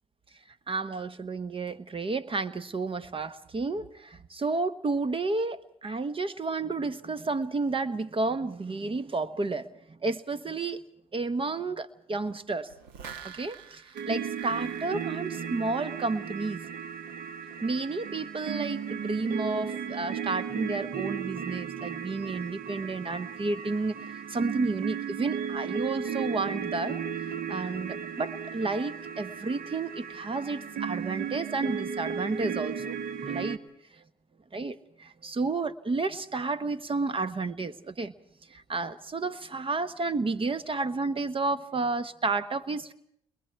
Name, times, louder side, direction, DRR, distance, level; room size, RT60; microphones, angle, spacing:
voice 1, 0.7-10.8 11.1-12.7 13.2-16.6 17.6-24.0 24.3-27.0 27.3-33.6 34.5-38.1 38.5-42.9, right 3 dB, 35° right, 12 dB, 1.2 m, -31 dB
sound 1, 12.7-16.2 16.5-16.6, right 8 dB, 85° right, 1.5 m, -46 dB
sound 2, 14.0-33.6, right 7 dB, 65° right, 1.2 m, -35 dB
29.5 x 21.5 x 4.6 m, 0.71 s
supercardioid pair, 55°, 16 cm